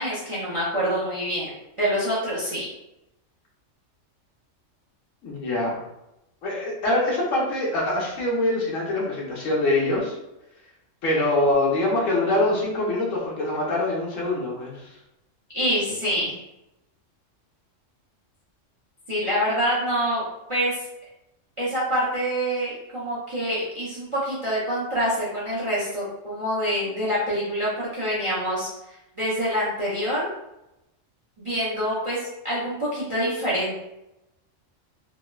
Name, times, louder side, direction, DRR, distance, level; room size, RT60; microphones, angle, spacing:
voice 1, 0.0-1.5 1.8-2.7 15.5-16.4 19.1-20.2 20.5-20.8 21.6-30.3 31.4-33.8, equal, 40° right, -8 dB, 0.4 m, -26 dB
voice 2, 5.2-5.8 6.4-10.2 11.0-14.7, left 2 dB, 80° left, -4 dB, 1.2 m, -24 dB
3.0 x 2.0 x 2.2 m, 0.90 s
omnidirectional pair, 1.3 m